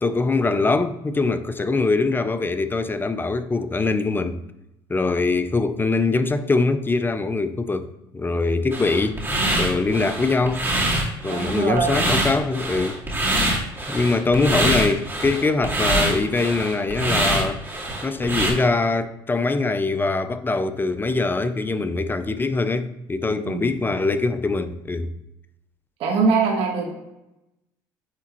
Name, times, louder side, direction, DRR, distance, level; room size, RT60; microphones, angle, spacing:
voice 1, 0.0-4.4 4.9-9.2 9.6-10.7 11.2-13.0 13.9-17.6 18.0-25.1, left 3 dB, 20° left, 0.5 m, -23 dB
sound 1, 8.7-18.5, right 1 dB, 20° right, 2.2 m, -24 dB
voice 2, 11.2-12.0 23.4-23.7 26.0-26.9, right 4 dB, 70° right, 1.4 m, -22 dB
9.3 x 3.5 x 3.0 m
supercardioid pair, 80°, 10 cm